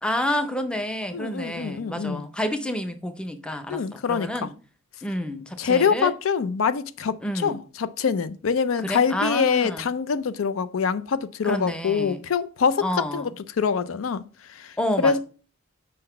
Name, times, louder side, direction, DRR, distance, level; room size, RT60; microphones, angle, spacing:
voice 1, 0.0-4.5 5.0-6.1 7.2-7.6 8.8-9.9 11.4-12.2 12.8-13.3 14.8-15.2, left 1 dB, 5° left, 0.5 m, -29 dB
voice 2, 1.1-2.2 3.7-4.5 5.6-12.9 13.1-14.2 14.5-15.2, left 6 dB, 85° left, 0.4 m, -25 dB
5.1 x 3.9 x 5.5 m
head